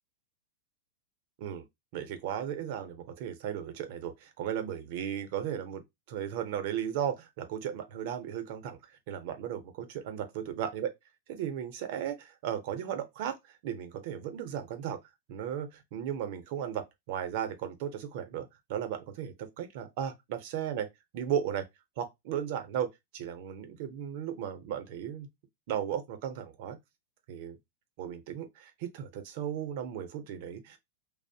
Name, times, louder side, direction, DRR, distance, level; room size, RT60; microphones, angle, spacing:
voice 1, 1.9-5.8 6.1-8.8 9.1-10.9 11.3-15.0 15.3-20.9 21.1-21.7 22.0-22.9 23.1-25.3 25.7-26.8 27.3-27.6 28.0-30.8, right 9 dB, 55° right, 0.6 m, -35 dB
2.6 x 2.0 x 2.6 m
supercardioid pair, 140°, 0 cm